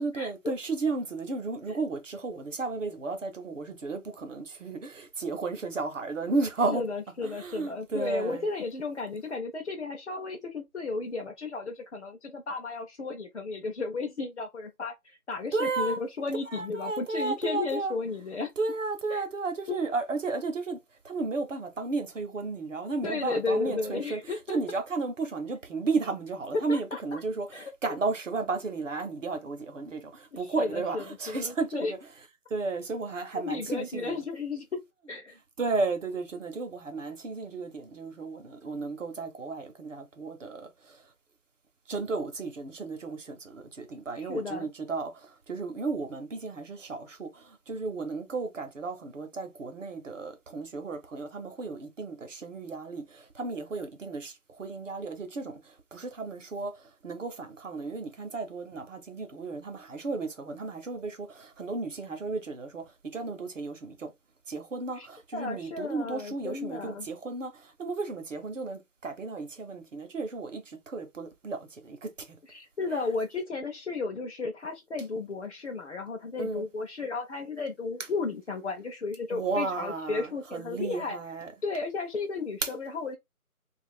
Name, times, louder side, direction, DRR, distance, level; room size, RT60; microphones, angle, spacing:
voice 1, 0.0-6.8 7.2-8.5 15.5-16.0 16.5-17.9 18.6-20.8 21.0-32.0 32.5-34.2 35.6-41.0 41.9-55.6 55.9-56.7 57.0-62.8 63.1-64.1 64.5-72.1 72.9-73.0 76.4-76.7 79.3-81.5 82.6-82.7, right 3 dB, 60° right, 0.7 m, -33 dB
voice 2, 6.7-18.5 19.1-19.2 19.7-19.8 23.0-24.6 26.7-27.2 27.5-27.7 30.3-31.9 33.4-34.8 35.1-35.4 44.2-44.7 65.0-65.1 65.3-67.1 72.5-81.2 81.6-83.2, left 4 dB, 50° left, 0.5 m, -34 dB
2.4 x 2.4 x 3.5 m
figure-of-eight pair, 160°, 44 cm